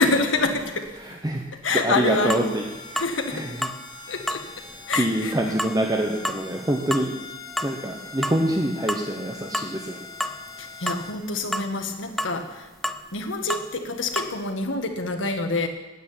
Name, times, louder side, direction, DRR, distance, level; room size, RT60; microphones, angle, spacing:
voice 1, 0.0-0.9 1.6-2.5 2.9-3.5 4.1-4.4 4.9-5.3 10.6-12.6 13.1-15.7, left 3 dB, 80° left, 5 dB, 1.5 m, -26 dB
voice 2, 1.0-1.4 1.8-2.6 2.9-3.0 3.3-3.5 5.0-7.1 7.6-10.1, right 1 dB, 20° right, 1 dB, 1.0 m, -25 dB
sound 1, 2.0-11.1, left 3 dB, 20° left, 1.6 m, -42 dB
sound 2, 2.3-2.5 3.0-3.1 3.6-3.8 4.3-4.5 4.9-5.1 5.6-5.8 6.2-6.4 6.9-7.1 7.6-7.8 8.2-8.4 8.9-9.2 9.5-9.7 10.2-10.4 10.9-11.0 11.5-11.7 12.2-12.3 12.8-13.0 13.5-13.7 14.2-14.3, equal, ahead, 0.4 m, -28 dB
9.4 x 8.8 x 9.8 m, 1.1 s
head